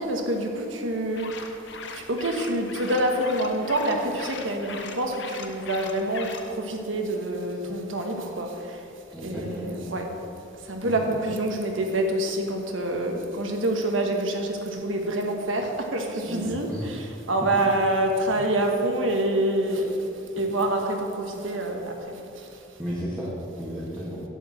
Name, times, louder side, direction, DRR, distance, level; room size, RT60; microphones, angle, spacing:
voice 1, 0.0-1.5 1.9-8.8 9.2-10.1 10.6-20.0 20.4-22.5, right 1 dB, 85° right, 3 dB, 1.3 m, -27 dB
sound 1, 1.1-6.5, left 5 dB, 65° left, 0.8 m, -40 dB
voice 2, 9.1-9.8 10.8-11.2 16.2-16.8 22.8-24.2, equal, 10° right, -9 dB, 1.8 m, -34 dB
11.5 x 4.8 x 7.7 m, 3.0 s
head